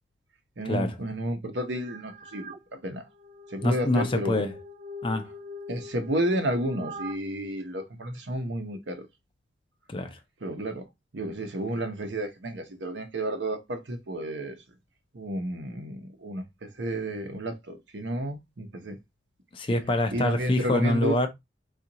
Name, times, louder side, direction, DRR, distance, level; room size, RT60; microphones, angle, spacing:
voice 1, 0.6-3.0 3.5-4.5 5.7-9.1 10.4-10.9 11.1-14.6 15.1-19.0 20.1-21.2, right 1 dB, 75° right, 0.8 m, -31 dB
sound 1, 1.9-2.6 3.1-7.1, left 1 dB, 40° right, 0.3 m, -43 dB
voice 2, 3.6-4.5 5.0-5.3 9.9-10.2 19.5-21.3, left 1 dB, 30° left, 0.5 m, -26 dB
3.8 x 2.4 x 2.8 m
head